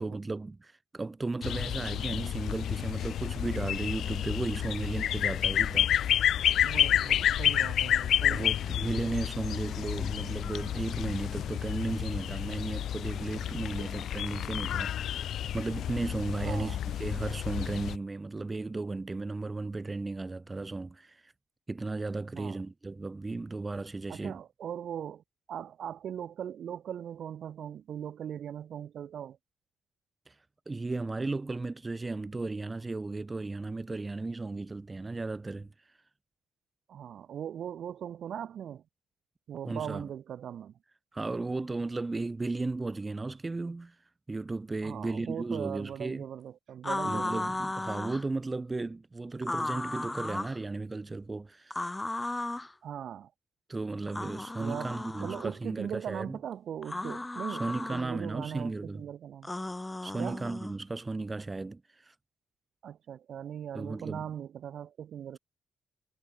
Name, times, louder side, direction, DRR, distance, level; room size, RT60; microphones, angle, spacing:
voice 1, 0.0-6.2 8.3-15.2 15.5-21.3 21.7-24.4 30.3-30.4 30.7-35.7 39.7-40.1 41.1-44.0 44.3-46.3 47.0-51.8 53.7-56.4 57.5-59.1 60.0-62.1 63.7-64.3, right 3 dB, 20° right, 3.5 m, -35 dB
sound 1, 1.4-18.0, left 10 dB, 70° left, 3.1 m, -30 dB
voice 2, 6.6-8.6 16.4-16.8 22.3-22.6 24.1-25.2 25.5-29.4 36.9-38.8 39.5-40.7 44.8-47.4 52.8-53.3 54.6-54.9 55.2-57.7 57.9-59.5 60.2-60.4 62.8-65.4, right 9 dB, 60° right, 4.1 m, -39 dB
sound 2, 46.8-48.2 49.4-50.6 51.7-52.7 54.1-55.5 56.8-58.0 59.4-60.7, left 2 dB, 15° left, 5.9 m, -35 dB
cardioid pair, 105°, 0 cm